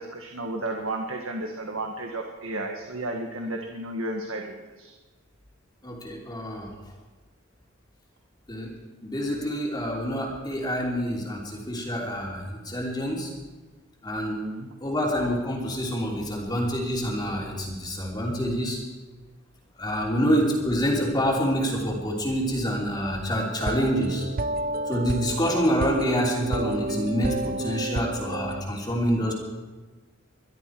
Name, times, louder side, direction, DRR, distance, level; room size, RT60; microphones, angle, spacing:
voice 1, 0.0-4.9 14.4-14.7 20.1-20.4, right 1 dB, 80° right, 2 dB, 1.7 m, -33 dB
voice 2, 5.8-6.7 8.5-8.7 9.0-13.3 14.0-14.4 14.8-18.8 19.8-24.2 24.9-29.3, equal, 20° left, -2 dB, 3.1 m, -27 dB
sound 1, 23.6-28.6, right 2 dB, 45° right, 0.6 m, -30 dB
23.0 x 12.5 x 4.7 m, 1.3 s
head